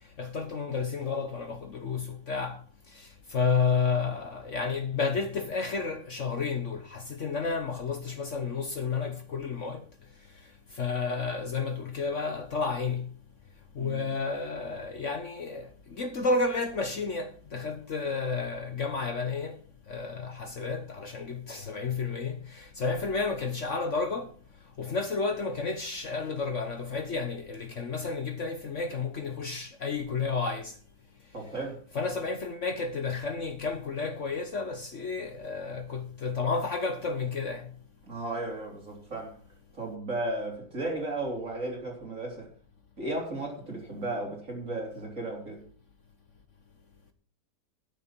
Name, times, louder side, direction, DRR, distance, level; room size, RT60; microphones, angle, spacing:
voice 1, 0.2-2.6 2.9-9.8 10.7-13.1 13.7-19.6 19.9-24.3 24.8-30.7 31.9-37.7, left 4 dB, 50° left, 1.3 m, -31 dB
voice 2, 13.8-14.1 31.3-31.8 38.1-39.4 39.7-42.5 43.0-45.6, right 2 dB, 50° right, 4.0 m, -35 dB
12.0 x 10.0 x 4.5 m
omnidirectional pair, 1.8 m